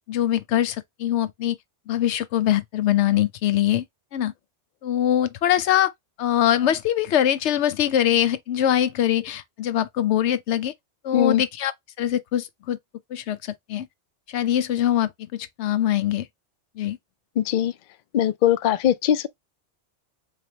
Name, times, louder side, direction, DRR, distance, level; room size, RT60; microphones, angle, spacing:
voice 1, 0.1-1.6 1.9-3.8 4.1-4.3 4.8-5.9 6.2-10.7 11.0-11.7 12.0-12.8 13.1-13.9 14.3-16.3 16.8-17.0, left 11 dB, 90° left, 0.9 m, -23 dB
voice 2, 17.4-17.7 18.1-19.3, left 10 dB, 60° left, 0.6 m, -20 dB
3.8 x 3.3 x 2.7 m
omnidirectional pair, 1.1 m